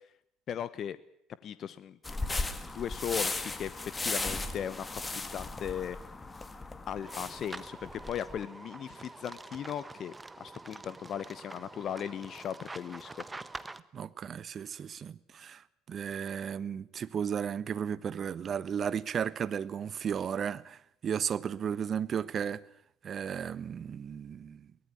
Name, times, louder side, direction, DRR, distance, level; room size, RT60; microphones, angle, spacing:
voice 1, 0.5-1.0 1.4-2.0 2.7-6.0 6.9-10.1 10.4-13.2, left 9 dB, 50° left, 1.0 m, -37 dB
sound 1, 2.0-8.4, left 3 dB, 20° left, 2.5 m, -36 dB
sound 2, 7.0-13.8, right 3 dB, 15° right, 1.4 m, -46 dB
voice 2, 13.9-22.6 23.0-24.7, right 8 dB, 45° right, 1.2 m, -34 dB
23.0 x 19.0 x 8.6 m
hypercardioid pair, 65°, 0 cm